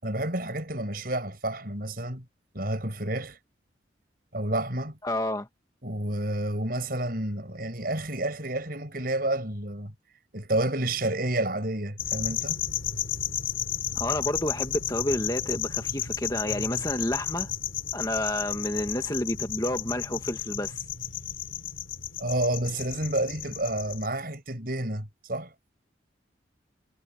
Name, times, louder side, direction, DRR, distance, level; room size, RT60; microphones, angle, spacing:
voice 1, 0.0-2.2 2.5-3.4 4.3-5.0 5.8-9.9 10.3-12.6 22.2-25.5, right 1 dB, 50° right, 6.4 m, -30 dB
voice 2, 5.0-5.5 13.9-17.5 17.9-20.8, left 1 dB, 20° left, 1.4 m, -30 dB
sound 1, 12.0-24.1, left 9 dB, 85° left, 3.2 m, -33 dB
head